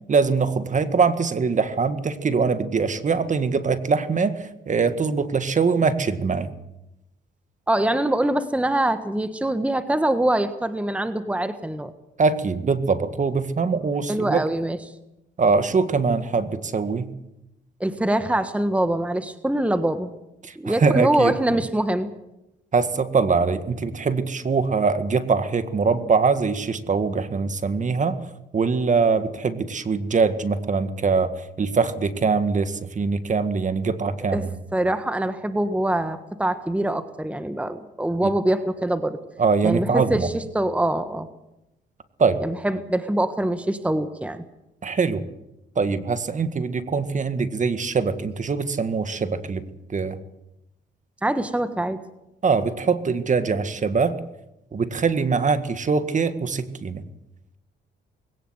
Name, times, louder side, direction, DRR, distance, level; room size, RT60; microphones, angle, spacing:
voice 1, 0.1-6.5 12.2-14.4 15.4-17.1 20.4-21.6 22.7-28.2 28.5-31.3 31.6-34.5 38.2-38.3 39.4-40.3 42.2-42.4 44.8-45.2 45.8-49.6 49.9-50.2 52.4-54.2 54.7-57.0, right 5 dB, 40° right, 11 dB, 1.8 m, -23 dB
voice 2, 7.7-11.9 14.1-14.8 17.8-20.1 20.6-22.1 34.3-34.5 34.7-39.2 39.6-41.3 42.4-44.4 51.2-52.0, right 1 dB, 5° right, 10 dB, 1.4 m, -24 dB
21.0 x 18.0 x 8.1 m, 0.89 s
cardioid pair, 90°, 20 cm